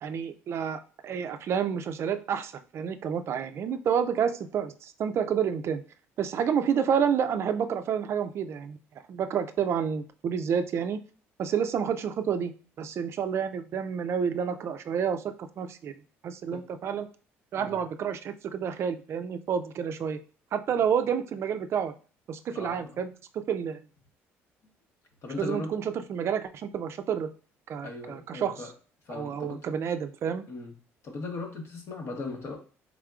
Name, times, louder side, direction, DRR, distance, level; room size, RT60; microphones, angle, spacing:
voice 1, 0.0-5.8 6.2-8.8 9.1-11.0 11.4-12.5 12.8-15.9 16.2-17.1 17.5-20.2 20.5-21.9 22.3-23.8 25.4-27.3 27.7-28.6 29.1-30.4, right 7 dB, 55° right, 9 dB, 0.4 m, -29 dB
voice 2, 22.5-23.0 25.2-25.7 27.8-28.7 29.1-29.7 30.5-30.7 31.0-32.6, left 3 dB, 55° left, 4 dB, 1.0 m, -38 dB
3.6 x 3.5 x 2.3 m, 0.39 s
supercardioid pair, 85°, 6 cm